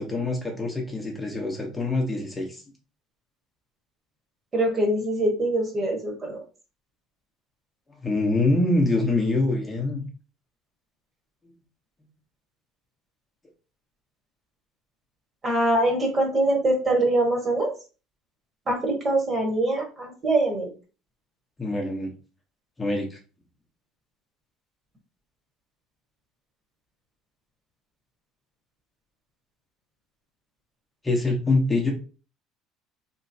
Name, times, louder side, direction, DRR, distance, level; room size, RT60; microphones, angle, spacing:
voice 1, 0.0-2.6 8.0-10.0 21.6-22.1 22.8-23.2 31.0-31.9, left 2 dB, 15° left, 0 dB, 0.8 m, -24 dB
voice 2, 4.5-6.4 15.4-17.7 18.7-20.7, right 1 dB, 30° right, 2 dB, 1.3 m, -23 dB
3.3 x 3.1 x 2.7 m, 0.34 s
cardioid pair, 115°, 0 cm